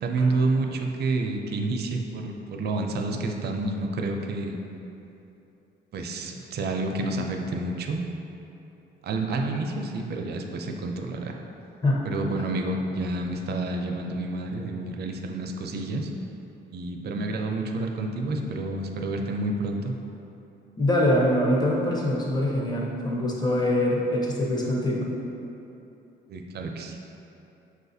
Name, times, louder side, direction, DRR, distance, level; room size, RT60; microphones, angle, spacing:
voice 1, 0.0-4.5 5.9-8.0 9.0-11.4 12.0-16.1 16.7-19.9 26.3-27.0, right 2 dB, 55° right, 3 dB, 0.4 m, -29 dB
voice 2, 20.8-25.1, left 1 dB, 20° left, -3 dB, 0.7 m, -24 dB
6.1 x 2.4 x 2.7 m, 2.9 s
cardioid pair, 90°, 20 cm